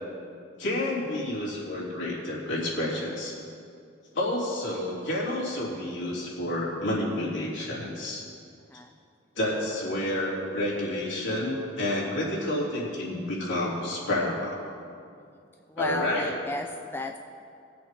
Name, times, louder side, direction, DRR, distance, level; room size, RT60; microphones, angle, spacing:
voice 1, 0.6-3.4 4.1-8.2 9.3-14.6 15.8-16.3, left 1 dB, 70° left, -6 dB, 3.2 m, -29 dB
voice 2, 15.7-17.2, left 1 dB, 10° left, 4 dB, 0.3 m, -34 dB
21.0 x 7.8 x 3.7 m, 2.4 s
head